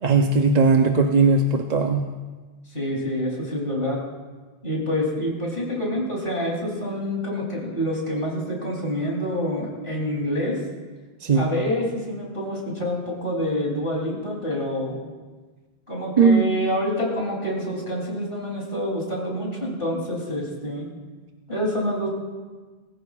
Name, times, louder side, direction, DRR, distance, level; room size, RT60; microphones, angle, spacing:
voice 1, 0.0-2.1 11.2-11.5 16.2-16.5, right 4 dB, 45° right, 3 dB, 0.7 m, -18 dB
voice 2, 2.7-4.0 4.6-10.6 11.3-15.0 15.9-20.9 21.5-22.1, equal, 55° left, -3 dB, 3.5 m, -27 dB
22.0 x 14.5 x 2.4 m, 1.3 s
omnidirectional pair, 1.1 m